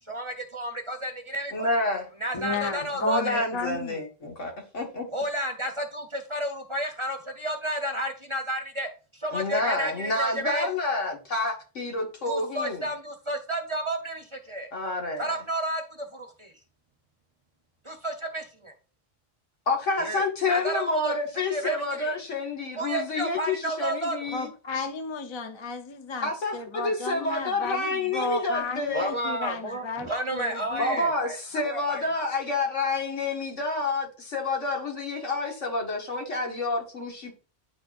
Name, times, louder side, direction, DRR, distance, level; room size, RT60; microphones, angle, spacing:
voice 1, 0.0-1.8 2.2-3.4 5.1-10.7 12.2-14.7 15.2-16.5 17.8-18.7 20.0-22.2 22.7-24.3 28.9-32.3, right 1 dB, 25° right, 0.9 m, -32 dB
voice 2, 1.5-2.0 3.0-5.1 9.3-12.8 14.7-15.3 19.7-24.5 26.2-29.1 30.8-37.3, left 2 dB, 75° left, 2.0 m, -28 dB
voice 3, 2.3-4.0 24.3-30.1 30.3-31.1, left 3 dB, 30° left, 0.6 m, -33 dB
9.9 x 4.4 x 2.5 m
omnidirectional pair, 1.3 m